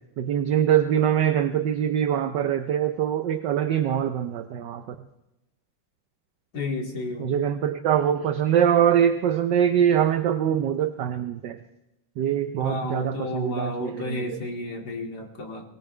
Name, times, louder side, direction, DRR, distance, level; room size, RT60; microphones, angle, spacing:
voice 1, 0.2-4.8 7.2-11.6 12.2-14.4, right 9 dB, 70° right, 9 dB, 1.3 m, -23 dB
voice 2, 6.5-7.3 12.6-15.6, left 2 dB, 50° left, 1 dB, 2.9 m, -32 dB
21.5 x 19.0 x 3.3 m, 0.93 s
omnidirectional pair, 2.2 m